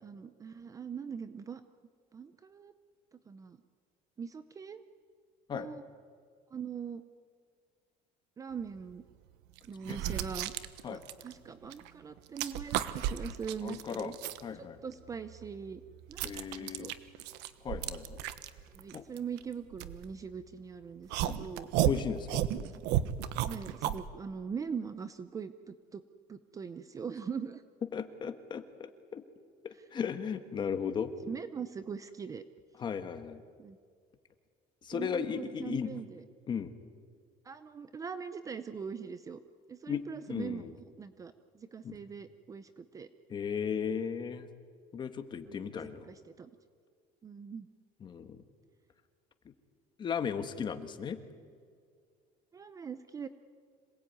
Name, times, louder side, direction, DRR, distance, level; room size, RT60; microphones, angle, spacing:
voice 1, 0.0-1.6 2.1-2.7 3.3-3.6 4.2-4.8 5.5-5.8 6.5-7.0 8.4-9.0 9.6-10.5 10.9-14.1 14.5-15.8 16.1-16.3 16.6-16.9 18.7-21.7 22.5-22.8 23.5-26.0 26.3-27.6 31.3-32.4 33.6-33.8 34.9-36.2 37.4-39.4 39.7-43.1 45.5-45.7 46.1-46.5 47.2-47.7 52.5-53.3, right 6 dB, 20° right, 12 dB, 0.6 m, -42 dB
sound 1, 8.8-8.9 9.6-11.9 12.2-14.4 14.9-20.5 21.1-24.0, right 12 dB, 75° right, 1.2 m, -34 dB
voice 2, 13.6-14.1 14.4-14.8 16.2-16.9 17.6-18.2 18.9-19.1 21.9-22.4 27.9-29.2 29.6-31.1 32.8-33.4 34.8-35.9 36.5-36.7 39.9-40.7 41.8-41.9 43.3-44.5 44.9-46.1 48.0-48.4 50.0-51.2, left 7 dB, 25° left, 9 dB, 1.4 m, -36 dB
26.5 x 19.0 x 9.4 m, 2.1 s
cardioid pair, 175°, 18 cm